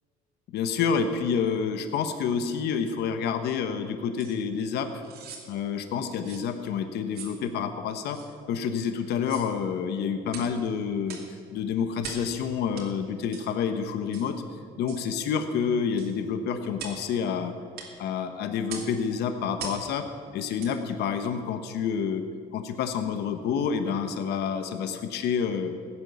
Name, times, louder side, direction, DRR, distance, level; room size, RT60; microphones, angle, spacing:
voice 1, 0.5-5.0 5.5-8.2 8.5-11.2 11.5-14.3 14.8-17.5 18.0-20.0 20.3-22.2 22.5-25.7, left 6 dB, 75° left, 8 dB, 1.2 m, -28 dB
sound 1, 4.2-4.3 5.0-5.5 6.2-6.5 7.1-7.4 8.1-8.3 9.2-9.5 10.3-10.5 11.1-11.3 12.0-12.3 12.7-12.9 13.3-13.5 14.1-14.3 14.9-15.1 16.0-16.1 16.8-17.0 17.7-17.9 18.7-18.9 19.6-19.8 20.6-20.7 21.2-21.3, right 5 dB, 70° right, 2.9 m, -41 dB
16.5 x 9.8 x 7.0 m, 2.1 s
cardioid pair, 110°, 17 cm